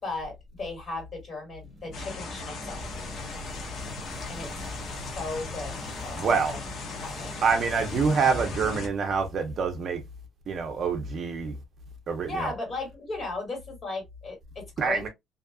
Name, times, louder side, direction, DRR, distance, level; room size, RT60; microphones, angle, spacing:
voice 1, 0.0-2.8 4.3-4.5 5.2-6.6 7.0-7.3 12.3-15.1, left 2 dB, 35° left, 1.9 m, -36 dB
sound 1, 1.6-9.6, left 1 dB, 15° left, 1.3 m, -44 dB
sound 2, 1.9-8.9, left 3 dB, 60° left, 0.7 m, -37 dB
voice 2, 6.2-6.5 7.4-10.0 10.5-11.6 12.1-12.5 14.8-15.1, right 5 dB, 45° right, 0.6 m, -26 dB
2.7 x 2.4 x 2.3 m
cardioid pair, 125°, 0 cm